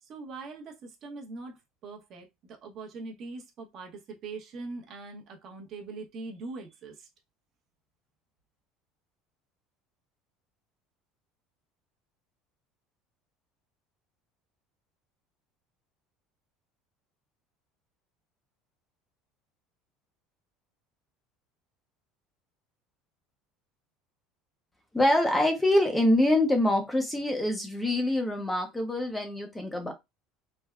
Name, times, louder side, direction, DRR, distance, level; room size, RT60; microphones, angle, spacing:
voice 1, 0.0-7.1, right 3 dB, 45° right, 0.8 m, -42 dB
voice 2, 24.9-29.9, left 1 dB, 10° left, 0.5 m, -25 dB
3.3 x 2.1 x 2.2 m
cardioid pair, 140°, 0 cm